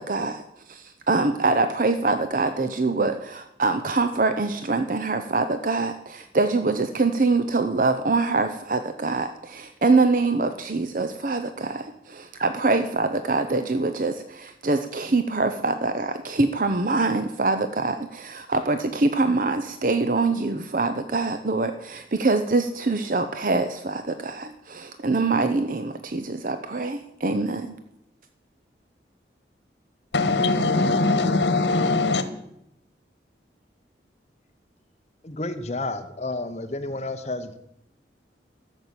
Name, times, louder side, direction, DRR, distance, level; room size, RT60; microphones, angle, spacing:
voice 1, 0.0-27.7, right 3 dB, 50° right, 9 dB, 0.7 m, -24 dB
voice 2, 30.1-32.2, left 3 dB, 85° left, 11 dB, 1.3 m, -21 dB
voice 3, 35.2-37.6, left 2 dB, 40° left, 10 dB, 0.9 m, -31 dB
13.5 x 7.3 x 8.3 m, 0.82 s
head